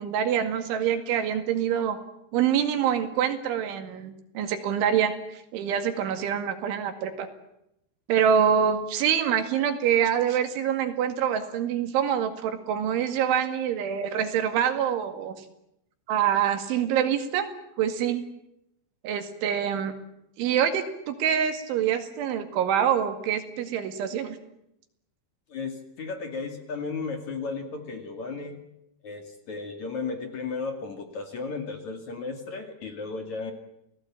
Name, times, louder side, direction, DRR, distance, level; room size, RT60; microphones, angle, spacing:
voice 1, 0.0-2.0 2.3-7.3 8.1-15.5 16.1-17.5 17.8-18.2 19.0-19.9 20.4-24.4, right 8 dB, 80° right, 8 dB, 4.5 m, -25 dB
voice 2, 25.5-28.6 29.0-33.5, left 4 dB, 45° left, 6 dB, 3.0 m, -34 dB
28.5 x 18.5 x 8.8 m, 0.82 s
omnidirectional pair, 5.4 m